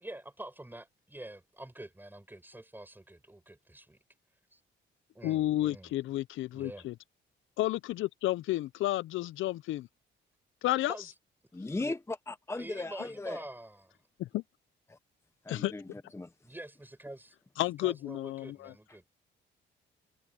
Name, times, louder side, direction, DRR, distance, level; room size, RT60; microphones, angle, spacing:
voice 1, 0.0-4.0 4.5-4.6 5.1-5.9 6.5-6.9 10.9-11.1 11.8-12.0 12.5-13.9 16.4-19.0, right 1 dB, 10° right, 6.0 m, -46 dB
voice 2, 5.2-6.9 7.6-9.9 10.6-11.0 14.2-14.4 15.5-15.7 17.6-18.7, left 15 dB, 80° left, 0.6 m, -31 dB
voice 3, 11.5-13.4 14.9-15.0 15.4-16.3, left 2 dB, 15° left, 0.9 m, -37 dB
cardioid pair, 90°, 20 cm